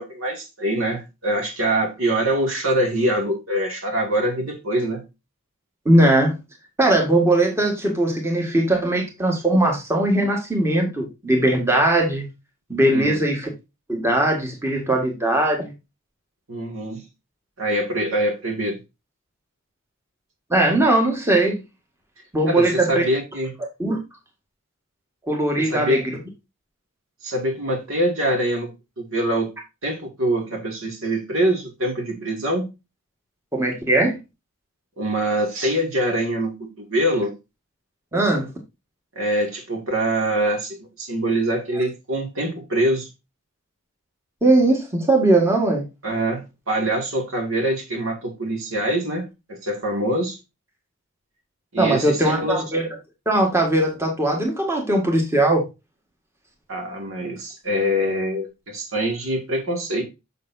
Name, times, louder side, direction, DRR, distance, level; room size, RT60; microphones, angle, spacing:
voice 1, 0.0-5.0 12.9-13.2 16.5-17.0 17.6-18.8 22.5-23.5 25.6-26.1 27.2-29.5 29.8-32.7 35.0-37.3 39.2-43.1 46.0-50.4 51.7-52.6 56.7-60.0, right 1 dB, 65° right, 2.1 m, -24 dB
voice 2, 5.8-6.3 6.8-12.2 12.7-13.5 13.9-15.7 20.5-21.6 22.3-23.1 23.8-24.0 25.3-26.2 33.5-34.2 38.1-38.5 44.4-45.8 51.8-52.9 53.2-55.6, right 1 dB, 10° right, 1.6 m, -19 dB
6.8 x 6.7 x 2.6 m
head